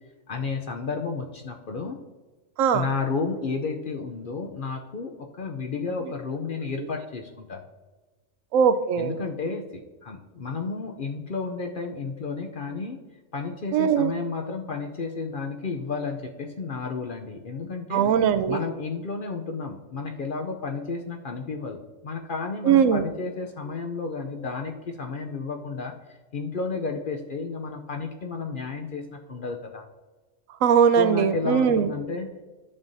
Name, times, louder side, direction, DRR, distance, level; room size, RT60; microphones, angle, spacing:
voice 1, 0.3-2.0 2.7-7.6 9.0-13.0 13.3-18.0 18.5-25.9 26.3-29.9 30.9-32.4, left 4 dB, 50° left, 3 dB, 0.7 m, -32 dB
voice 2, 8.5-9.1 13.7-14.1 17.9-18.6 22.6-23.0 30.6-31.9, right 7 dB, 80° right, 12 dB, 1.0 m, -20 dB
11.0 x 7.2 x 2.6 m, 1.3 s
omnidirectional pair, 1.3 m